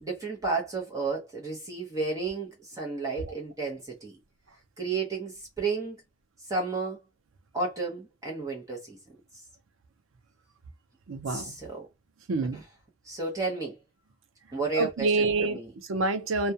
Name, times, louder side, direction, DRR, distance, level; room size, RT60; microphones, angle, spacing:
voice 1, 0.0-4.2 4.8-6.0 6.5-7.0 7.5-9.0 11.3-11.8 13.0-13.7 14.5-15.1 15.5-15.7, right 3 dB, 15° right, 0.7 m, -32 dB
voice 2, 11.1-11.6 12.3-12.6 14.7-16.5, right 3 dB, 85° right, 0.5 m, -27 dB
2.3 x 2.2 x 2.7 m
head